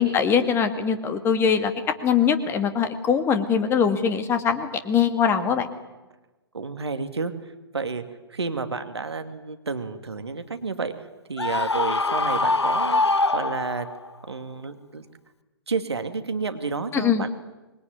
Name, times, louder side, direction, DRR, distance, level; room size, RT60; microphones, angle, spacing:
voice 1, 0.0-1.7 2.0-5.7 16.9-17.2, left 7 dB, 20° left, 8 dB, 2.2 m, -22 dB
voice 2, 6.5-8.0 8.3-10.9 11.3-13.0 13.3-13.9 14.3-15.0 15.7-17.3, right 4 dB, 75° right, 8 dB, 2.4 m, -30 dB
Screaming, 11.4-14.1, left 3 dB, 85° left, 0.8 m, -23 dB
26.0 x 21.5 x 9.6 m, 1.1 s
figure-of-eight pair, 120°, 14 cm